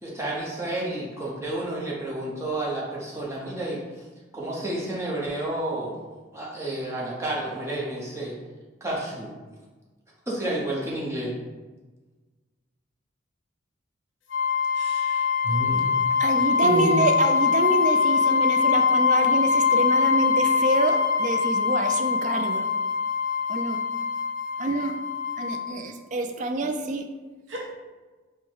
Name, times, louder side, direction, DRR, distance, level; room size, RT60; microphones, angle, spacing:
voice 1, 0.0-4.1 4.3-6.0 6.3-8.3 8.8-9.3 10.3-11.3, right 1 dB, 15° right, -5 dB, 0.9 m, -30 dB
sound 1, 14.3-25.7, left 6 dB, 75° left, 0.6 m, -23 dB
voice 2, 14.7-15.9 16.6-17.1 27.5-27.6, equal, 70° right, -2 dB, 0.7 m, -30 dB
voice 3, 16.2-22.7 23.5-23.8 24.6-25.0 25.4-27.1, right 2 dB, 40° right, 6 dB, 0.3 m, -26 dB
4.5 x 2.2 x 4.5 m, 1.3 s
head